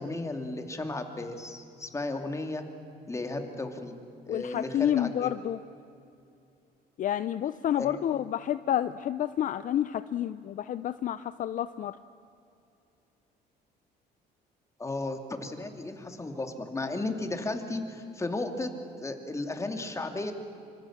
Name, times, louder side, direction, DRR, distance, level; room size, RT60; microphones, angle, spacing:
voice 1, 0.0-2.6 3.1-3.9 4.3-5.3 7.8-8.0 14.8-18.7 19.0-20.3, left 2 dB, 15° left, 5 dB, 2.6 m, -34 dB
voice 2, 4.3-5.6 7.0-12.0, left 11 dB, 50° left, 13 dB, 0.6 m, -29 dB
25.5 x 25.0 x 7.3 m, 2.6 s
cardioid pair, 110°, 17 cm